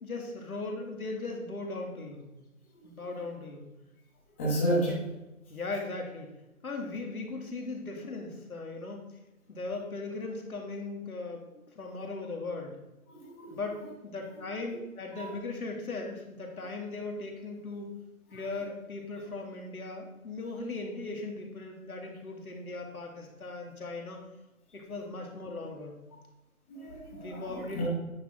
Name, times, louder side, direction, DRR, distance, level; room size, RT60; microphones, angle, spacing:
voice 1, 0.0-2.2 2.8-3.7 4.9-5.0 5.5-6.3 6.6-9.0 9.5-12.8 13.5-17.9 18.3-24.2 24.7-25.9 27.1-27.9, left 3 dB, 80° left, 1 dB, 2.3 m, -38 dB
voice 2, 4.4-4.9 13.1-13.6 15.1-15.3 26.7-27.9, equal, 10° left, -8 dB, 1.2 m, -31 dB
9.3 x 6.2 x 3.7 m, 1.0 s
hypercardioid pair, 170°, 43 cm